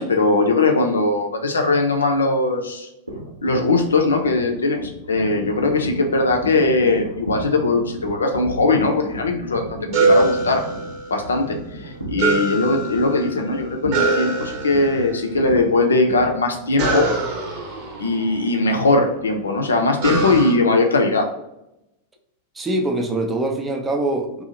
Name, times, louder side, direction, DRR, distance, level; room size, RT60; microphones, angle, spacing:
voice 1, 0.0-2.9 3.4-10.6 11.1-17.1 18.0-21.3, left 3 dB, 75° left, 3 dB, 0.5 m, -20 dB
sound 1, 3.1-17.1, right 1 dB, 85° right, 0.7 m, -34 dB
sound 2, 9.9-11.4 12.2-13.4 13.9-15.1 16.8-18.9 20.0-20.5, right 3 dB, 40° right, 0.8 m, -23 dB
voice 2, 22.6-24.4, right 2 dB, 15° right, 3 dB, 0.5 m, -23 dB
2.6 x 2.3 x 2.8 m, 0.85 s
figure-of-eight pair, 90°, 0 cm